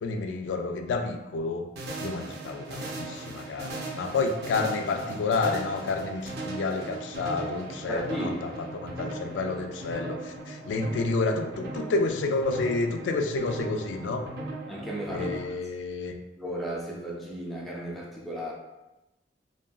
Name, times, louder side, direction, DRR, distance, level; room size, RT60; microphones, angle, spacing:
voice 1, 0.0-1.7 2.0-14.3 15.1-16.2, left 3 dB, 80° left, 5 dB, 0.3 m, -30 dB
sound 1, 1.8-15.4, right 2 dB, 60° right, 0.6 m, -38 dB
voice 2, 7.9-8.5 14.7-15.3 16.4-18.5, equal, ahead, -4 dB, 0.3 m, -34 dB
2.7 x 2.5 x 2.2 m, 0.99 s
head